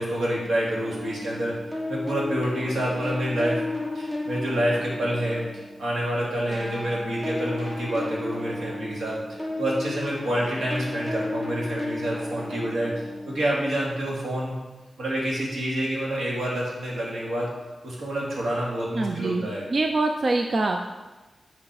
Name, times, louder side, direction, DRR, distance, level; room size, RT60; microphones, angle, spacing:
voice 1, 0.0-1.5 1.9-3.6 3.9-14.5 15.0-17.5 17.8-19.7, right 1 dB, 80° right, -5 dB, 2.5 m, -28 dB
sound 1, 0.8-6.0 6.4-14.1, left 2 dB, 10° right, 1.0 m, -33 dB
voice 2, 18.9-20.9, right 2 dB, 35° right, 4 dB, 0.4 m, -25 dB
8.5 x 5.1 x 4.8 m, 1.2 s
wide cardioid pair, 170°, 0 cm